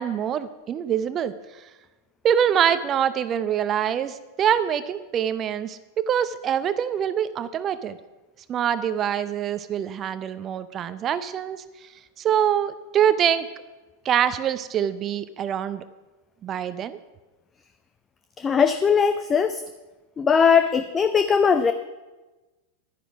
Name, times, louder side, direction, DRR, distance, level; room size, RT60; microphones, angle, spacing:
voice 1, 0.0-1.3 2.2-8.0 8.5-11.9 12.2-13.5 14.0-15.8 16.4-17.0, right 9 dB, 30° right, 14 dB, 0.6 m, -24 dB
voice 2, 18.4-19.6 20.2-21.7, left 6 dB, 20° left, 10 dB, 0.5 m, -19 dB
11.0 x 10.0 x 5.9 m, 1.1 s
figure-of-eight pair, 90°, 0 cm